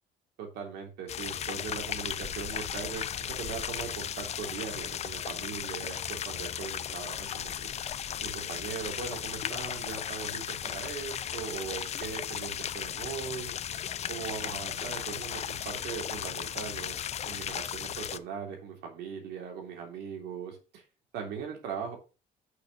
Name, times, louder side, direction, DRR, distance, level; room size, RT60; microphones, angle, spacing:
voice 1, 0.4-7.7 8.2-13.5 14.1-17.0 17.2-20.8 21.1-22.0, right 6 dB, 85° right, 2 dB, 3.2 m, -40 dB
sound 1, 1.1-18.2, left 9 dB, 40° left, 0.5 m, -36 dB
6.6 x 5.3 x 6.5 m, 0.32 s
cardioid pair, 110°, 17 cm